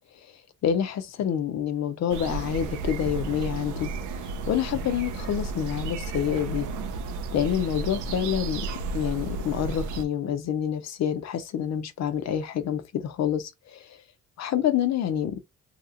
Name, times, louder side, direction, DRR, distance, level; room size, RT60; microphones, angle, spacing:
voice 1, 0.6-3.9 4.5-6.7 7.3-8.6 8.9-14.0 14.4-15.4, left 9 dB, 60° left, 0.6 m, -27 dB
sound 1, 2.1-10.0, right 3 dB, 85° right, 0.6 m, -33 dB
2.9 x 2.8 x 2.5 m
cardioid pair, 90°, 30 cm